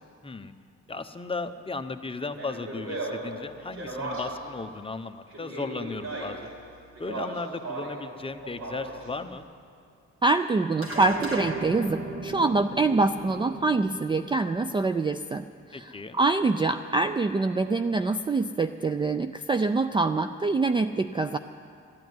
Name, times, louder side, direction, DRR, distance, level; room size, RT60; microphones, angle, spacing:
voice 1, 0.9-6.5 7.0-9.5 15.7-16.2, left 3 dB, 20° left, 8 dB, 0.8 m, -36 dB
Speech, 2.3-4.5 5.3-6.5 6.9-8.0 8.4-9.1, right 2 dB, 60° right, 5.4 m, -36 dB
voice 2, 10.2-15.4 15.7-21.4, right 3 dB, 15° right, 9 dB, 0.4 m, -25 dB
sound 1, 10.8-15.4, right 2 dB, 45° right, 1.8 m, -36 dB
14.5 x 10.5 x 9.5 m, 2.4 s
cardioid pair, 90°, 30 cm